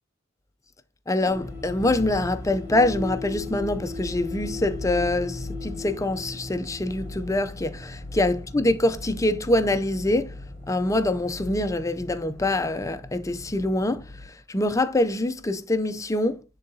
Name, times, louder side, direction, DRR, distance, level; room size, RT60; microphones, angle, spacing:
voice 1, 1.1-10.4 10.7-16.4, left 1 dB, 15° left, 0.5 m, -25 dB
sound 1, 1.3-14.3, left 2 dB, 10° right, 3.0 m, -37 dB
10.5 x 3.8 x 2.7 m
head